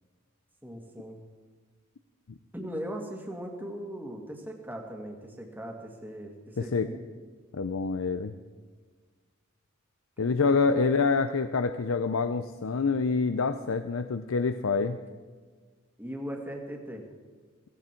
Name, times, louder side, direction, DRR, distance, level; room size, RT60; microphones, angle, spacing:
voice 1, 0.6-1.2 2.5-7.0 10.2-10.3 10.7-10.9 16.0-17.1, equal, 10° right, 2 dB, 1.9 m, -39 dB
voice 2, 6.6-6.9 7.5-8.3 10.2-15.0, left 4 dB, 70° left, 10 dB, 0.6 m, -26 dB
16.5 x 16.0 x 4.5 m, 1.4 s
head